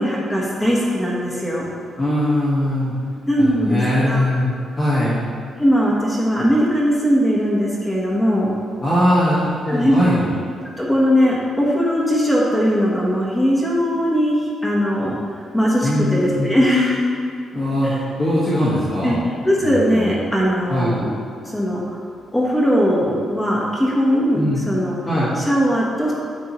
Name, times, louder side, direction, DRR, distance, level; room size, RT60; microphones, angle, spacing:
voice 1, 0.0-1.7 3.3-4.2 5.6-8.6 9.7-10.0 10.8-17.1 17.8-18.0 19.0-21.1 21.4-21.8 22.3-25.0 25.4-26.1, equal, 10° left, -5 dB, 1.2 m, -19 dB
voice 2, 2.0-2.9 3.4-4.5 4.8-5.2 8.8-10.2 15.8-16.5 17.5-17.9 18.2-19.2 19.6-20.1 20.7-21.0 24.3-24.6 25.0-25.3, left 1 dB, 25° left, -10 dB, 1.6 m, -20 dB
9.6 x 8.1 x 3.1 m, 2.2 s
cardioid pair, 170°, 0 cm